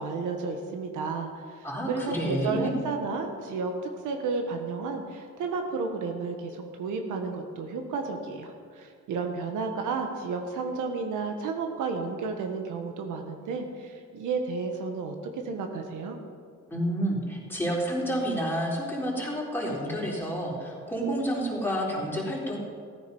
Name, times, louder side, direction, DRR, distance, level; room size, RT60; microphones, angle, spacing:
voice 1, 0.0-16.2, right 4 dB, 85° right, 4 dB, 1.4 m, -32 dB
voice 2, 1.6-2.7 16.7-22.6, equal, 5° left, -4 dB, 3.9 m, -29 dB
15.5 x 9.5 x 5.5 m, 2.1 s
cardioid pair, 90°, 30 cm